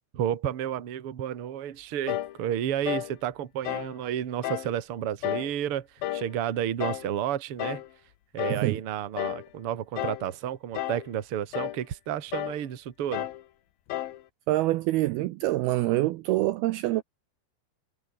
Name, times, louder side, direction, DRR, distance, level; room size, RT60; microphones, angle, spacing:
voice 1, 0.1-7.8 8.3-13.3, right 10 dB, 50° right, 1.9 m, -31 dB
sound 1, 2.1-2.4 2.9-3.1 3.7-4.0 4.4-4.7 5.2-5.5 6.0-6.3 6.8-7.1 7.6-7.9 8.4-8.7 9.2-9.5 10.0-10.3 10.8-11.1 11.5-11.8 12.3-12.6 13.1-13.4 13.9-14.2, left 14 dB, 70° left, 2.7 m, -32 dB
voice 2, 14.5-17.0, right 17 dB, 75° right, 2.4 m, -25 dB
omnidirectional pair, 5.0 m